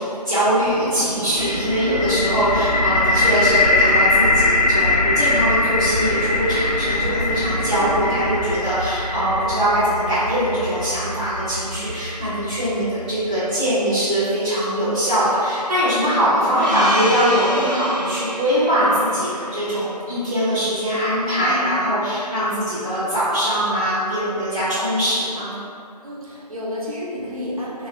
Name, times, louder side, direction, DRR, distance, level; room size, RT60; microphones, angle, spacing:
voice 1, 0.0-25.5, equal, 10° left, -20 dB, 0.6 m, -22 dB
sound 1, 0.6-8.4, right 2 dB, 90° right, 0.5 m, -31 dB
sound 2, 1.4-13.2, left 2 dB, 75° left, 0.5 m, -22 dB
voice 2, 1.8-2.2 2.5-2.6 21.4-21.7 26.0-27.9, left 1 dB, 55° right, -6 dB, 0.8 m, -30 dB
Gong, 16.6-20.9, equal, 90° left, 1.0 m, -29 dB
3.2 x 2.1 x 3.7 m, 2.5 s
figure-of-eight pair, 170°, 21 cm